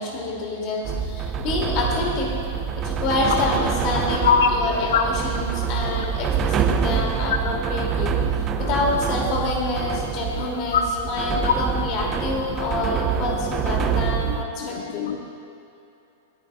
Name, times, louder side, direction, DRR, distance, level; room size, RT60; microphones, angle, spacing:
voice 1, 0.0-2.3 2.8-8.2 8.6-15.0, left 2 dB, 45° left, -1 dB, 2.8 m, -27 dB
sound 1, 0.8-14.4, right 7 dB, 30° right, 0.6 m, -26 dB
voice 2, 4.2-4.6 4.9-5.0 10.4-10.8 11.3-11.5 14.2-14.3 14.6-15.2, left 7 dB, 65° left, 5 dB, 1.2 m, -22 dB
23.5 x 9.8 x 2.5 m, 2.8 s
figure-of-eight pair, 100°, 0 cm